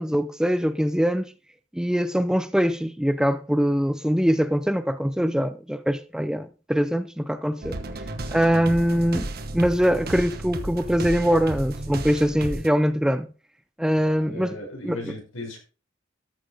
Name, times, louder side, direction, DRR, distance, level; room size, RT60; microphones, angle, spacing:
voice 1, 0.0-1.3 1.7-7.8 8.3-9.3 9.5-13.3 13.8-14.6 14.8-15.1, equal, 5° right, 0.5 m, -23 dB
sound 1, 7.6-12.7, right 2 dB, 50° right, 1.2 m, -33 dB
voice 2, 14.0-15.6, left 1 dB, 90° left, 5.4 m, -37 dB
13.5 x 6.1 x 5.0 m
head